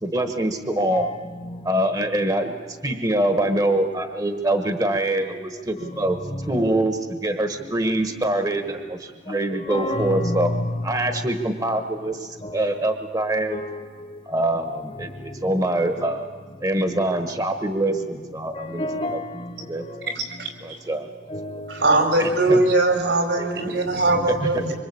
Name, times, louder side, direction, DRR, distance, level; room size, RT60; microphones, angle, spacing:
voice 1, 0.0-1.1 1.6-6.2 6.5-10.5 10.8-13.6 14.3-16.3 16.6-19.2 19.6-19.9 20.6-21.1 22.2-22.6 23.4-23.7 24.3-24.6, right 1 dB, 20° right, 1.3 m, -24 dB
voice 2, 0.7-1.6 3.3-3.7 4.5-4.7 5.8-6.8 7.6-7.7 9.3-11.2 12.4-12.8 13.5-14.2 14.6-15.1 15.4-16.2 18.5-20.1 21.3-21.9 24.1-24.3, left 1 dB, 30° left, 1.3 m, -32 dB
voice 3, 20.1-20.5 21.7-24.7, right 2 dB, 75° right, 4.7 m, -20 dB
25.5 x 25.0 x 8.5 m
head